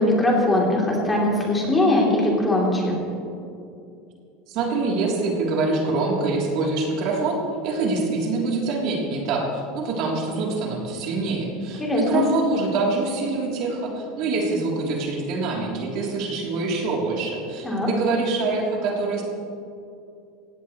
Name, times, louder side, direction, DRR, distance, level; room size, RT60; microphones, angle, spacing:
voice 1, 0.0-3.0 11.8-12.2 17.6-17.9, left 1 dB, 10° left, -3 dB, 3.4 m, -21 dB
voice 2, 4.5-19.2, right 3 dB, 55° right, -2 dB, 3.3 m, -25 dB
18.0 x 16.5 x 3.2 m, 2.5 s
supercardioid pair, 130°, 0 cm